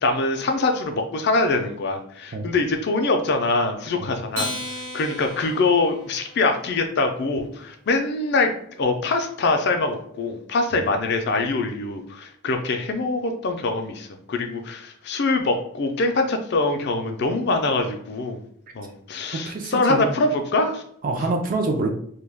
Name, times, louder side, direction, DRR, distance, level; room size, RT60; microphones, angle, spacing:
voice 1, 0.0-8.5 8.8-18.4 18.7-20.8, left 3 dB, 50° left, 5 dB, 0.4 m, -24 dB
Acoustic guitar, 4.3-7.0, left 1 dB, 60° right, 1.0 m, -34 dB
voice 2, 19.3-20.2 21.0-21.9, right 3 dB, 40° right, 3 dB, 0.3 m, -26 dB
2.2 x 2.2 x 3.3 m, 0.65 s
head